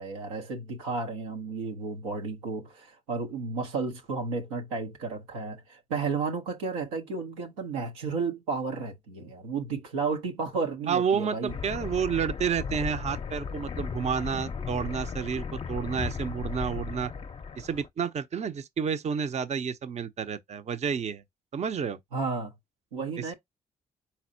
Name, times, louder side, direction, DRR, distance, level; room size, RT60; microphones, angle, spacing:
voice 1, 0.0-11.5 22.1-22.5 22.9-23.3, right 4 dB, 90° right, 0.6 m, -32 dB
voice 2, 10.9-17.1 17.6-21.2 21.5-22.0 23.2-23.3, right 7 dB, 40° right, 0.5 m, -30 dB
sound 1, 11.5-17.9, left 5 dB, 35° left, 0.5 m, -36 dB
4.3 x 4.1 x 2.5 m
hypercardioid pair, 45°, 17 cm